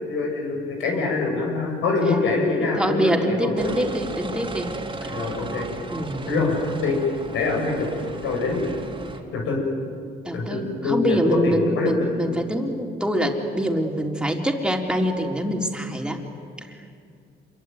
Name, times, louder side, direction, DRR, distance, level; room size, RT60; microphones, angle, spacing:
voice 1, 0.1-3.7 5.1-5.7 6.3-6.6 6.8-7.0 7.3-7.9 8.2-8.6 9.3-9.6 10.3-12.1, left 3 dB, 85° left, 0 dB, 7.9 m, -24 dB
voice 2, 2.8-4.7 5.0-5.1 5.9-6.2 10.2-16.2 16.7-16.8, equal, 5° right, 1 dB, 3.9 m, -25 dB
sound 1, 3.6-9.2, right 2 dB, 25° right, 3.4 m, -35 dB
27.0 x 23.0 x 9.5 m, 2.3 s
cardioid pair, 90°, 20 cm